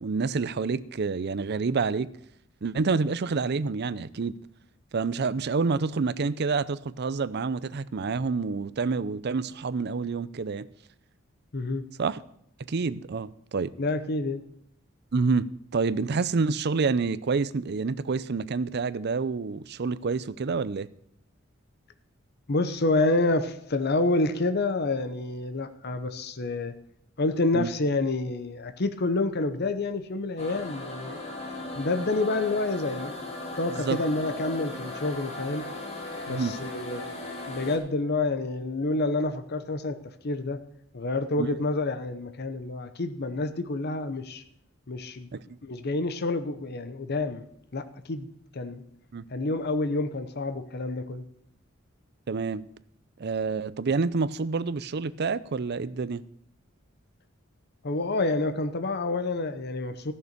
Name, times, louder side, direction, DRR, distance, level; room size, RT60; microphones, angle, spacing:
voice 1, 0.0-2.1 2.6-4.3 4.9-10.7 12.0-12.2 12.7-13.7 15.1-20.9 27.5-27.7 33.8-34.0 36.3-36.6 41.4-41.5 45.3-45.4 49.1-49.3 52.3-52.6 53.2-56.2, right 4 dB, 55° right, 0.5 m, -28 dB
voice 2, 11.5-11.9 13.8-14.4 22.5-26.7 27.2-31.2 31.7-33.2 33.6-35.7 36.3-37.1 37.5-40.0 40.2-40.6 40.9-44.4 44.9-45.3 45.6-47.4 47.7-48.3 48.5-48.8 49.3-51.2 57.8-60.1, left 2 dB, 55° left, 0.8 m, -28 dB
sound 1, 30.4-37.8, left 2 dB, 35° left, 2.5 m, -37 dB
14.5 x 6.7 x 6.8 m
head